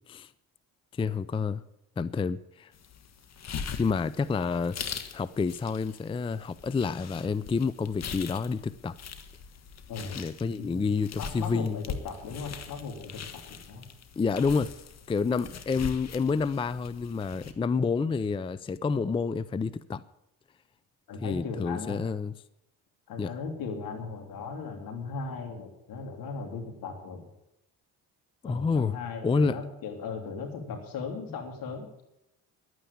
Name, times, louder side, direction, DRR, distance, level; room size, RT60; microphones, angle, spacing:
voice 1, 0.9-1.6 2.0-2.7 3.8-4.8 5.1-8.9 10.1-11.8 14.2-14.7 15.1-20.0 21.2-22.3 23.2-23.3 28.4-29.0 29.2-29.6, left 5 dB, 15° left, 17 dB, 0.4 m, -28 dB
sound 1, 2.7-17.5, left 6 dB, 50° left, 1.4 m, -42 dB
voice 2, 10.6-10.9 11.2-13.9 21.1-22.0 23.1-27.3 28.4-31.9, left 4 dB, 70° left, 4 dB, 3.2 m, -37 dB
11.0 x 9.2 x 8.6 m, 0.85 s
cardioid pair, 90°, 35 cm